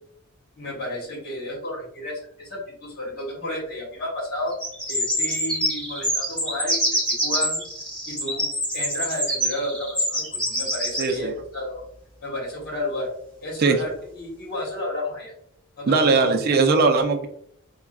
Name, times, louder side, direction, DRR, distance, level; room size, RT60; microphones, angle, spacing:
voice 1, 0.6-4.5 4.9-7.6 8.1-8.5 8.7-11.8 12.2-13.1 13.4-15.3 15.8-16.1, left 1 dB, 50° left, -3 dB, 1.2 m, -32 dB
sound 1, 4.5-11.2, equal, 5° left, 1.4 m, -26 dB
voice 2, 11.0-11.3 13.6-13.8 15.9-17.3, right 4 dB, 45° right, 5 dB, 0.4 m, -19 dB
3.6 x 2.2 x 2.3 m, 0.70 s
head